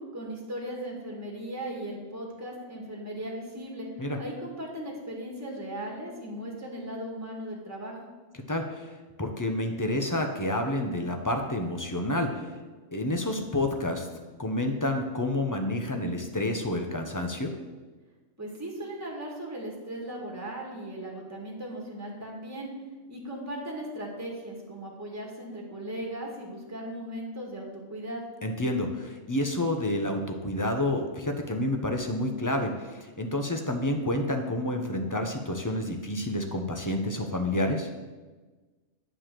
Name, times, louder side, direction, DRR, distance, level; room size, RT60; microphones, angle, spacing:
voice 1, 0.0-3.9 4.2-8.0 18.4-22.7 23.1-28.2, right 1 dB, 10° right, -1 dB, 1.8 m, -37 dB
voice 2, 8.5-8.9 9.2-12.3 12.9-14.1 14.4-17.5 28.4-37.9, left 1 dB, 15° left, 4 dB, 0.8 m, -29 dB
9.0 x 4.9 x 7.6 m, 1.3 s
omnidirectional pair, 1.4 m